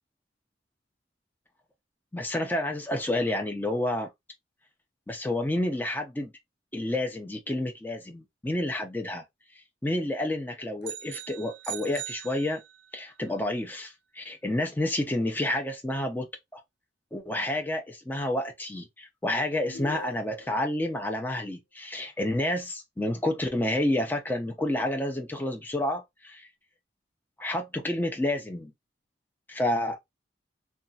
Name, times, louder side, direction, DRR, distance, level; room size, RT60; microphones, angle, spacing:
voice 1, 2.1-4.1 5.1-6.3 6.7-9.2 9.8-12.6 12.9-16.6 17.1-26.5 27.4-28.7 29.5-30.0, left 1 dB, 10° left, 0.5 m, -29 dB
sound 1, 10.8-13.0, right 12 dB, 75° right, 0.3 m, -40 dB
sound 2, 19.7-20.7, left 2 dB, 90° left, 0.6 m, -42 dB
2.9 x 2.3 x 2.6 m
head